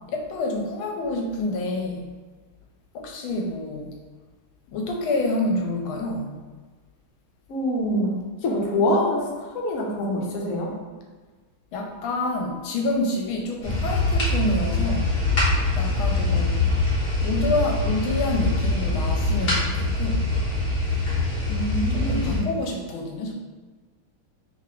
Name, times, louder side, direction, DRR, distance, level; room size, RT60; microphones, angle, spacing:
voice 1, 0.1-2.1 2.9-3.9 4.7-6.4 11.7-15.1 15.8-16.7 17.2-20.3 21.9-23.3, left 2 dB, 80° left, 1 dB, 1.4 m, -28 dB
voice 2, 7.5-8.2 8.4-10.7 21.5-22.5, left 1 dB, 60° left, -2 dB, 0.9 m, -25 dB
sound 1, 13.6-22.4, left 2 dB, 35° left, 1.1 m, -23 dB
3.4 x 3.2 x 3.7 m, 1.3 s
omnidirectional pair, 2.3 m